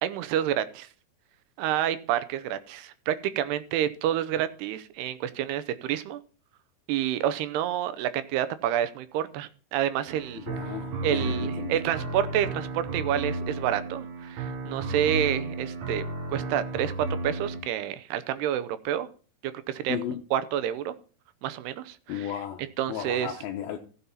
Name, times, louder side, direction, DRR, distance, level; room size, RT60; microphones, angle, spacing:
voice 1, 0.0-0.9 1.6-6.2 6.9-10.4 11.0-19.1 19.4-20.0 20.3-21.0 21.4-22.3 22.6-23.3, right 11 dB, 90° right, 2.8 m, -29 dB
sound 1, 10.1-17.6, right 2 dB, 65° right, 3.6 m, -33 dB
voice 2, 10.3-11.8 19.9-20.2 22.1-22.6 22.9-23.8, left 9 dB, 75° left, 2.7 m, -34 dB
15.0 x 7.1 x 4.2 m
omnidirectional pair, 4.7 m